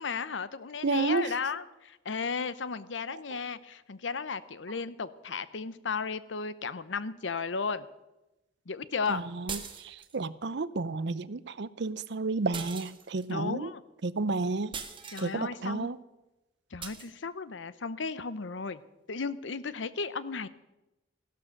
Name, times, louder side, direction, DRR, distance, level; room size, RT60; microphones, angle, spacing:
voice 1, 0.0-7.9 8.7-9.2 13.3-13.8 15.1-15.9 16.7-18.8 19.1-20.5, left 5 dB, 85° left, 16 dB, 0.8 m, -34 dB
voice 2, 0.8-1.3 9.1-13.7 14.0-14.7 15.2-16.0, right 3 dB, 65° right, 17 dB, 0.6 m, -31 dB
sound 1, 9.5-10.2 12.5-13.3 14.7-15.3 16.8-17.1, right 6 dB, 30° right, 1.4 m, -40 dB
15.5 x 12.0 x 6.5 m, 1.0 s
head